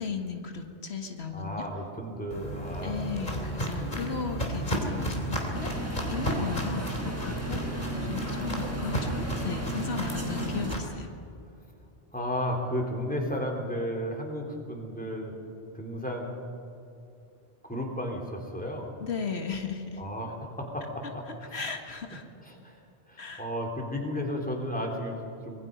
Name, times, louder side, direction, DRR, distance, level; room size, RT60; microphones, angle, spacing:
voice 1, 0.0-1.6 2.8-7.2 7.5-7.6 7.9-11.1 19.0-20.0 21.5-22.2 23.2-23.5, left 5 dB, 90° left, 4 dB, 2.0 m, -36 dB
voice 2, 1.3-3.4 6.3-6.5 12.1-15.3 15.8-16.3 17.6-18.9 20.0-21.6 22.1-22.8 23.1-25.7, equal, 10° left, 0 dB, 3.4 m, -34 dB
Walk footsteps, 2.3-10.8, equal, 45° left, 3.4 m, -32 dB
sound 1, 5.5-10.8, right 1 dB, 15° right, 1.6 m, -36 dB
25.5 x 20.5 x 5.3 m, 2.7 s
omnidirectional pair, 1.1 m